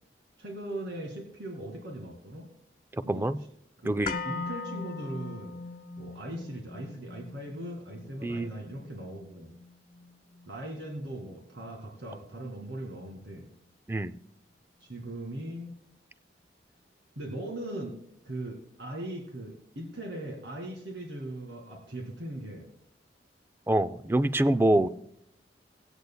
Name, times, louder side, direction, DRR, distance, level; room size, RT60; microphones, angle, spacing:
voice 1, 0.4-2.5 3.0-3.3 3.8-5.6 6.0-9.5 10.5-13.5 14.8-15.7 17.2-18.0 18.2-22.7, right 1 dB, 80° right, 1 dB, 1.9 m, -39 dB
voice 2, 3.1-3.4 3.9-4.2 8.2-8.5 13.9-14.2 23.7-24.9, right 1 dB, 15° right, 13 dB, 0.3 m, -25 dB
sound 1, 4.0-12.1 12.4-12.5, left 4 dB, 50° left, 0.5 m, -41 dB
24.0 x 8.1 x 2.2 m, 0.75 s
head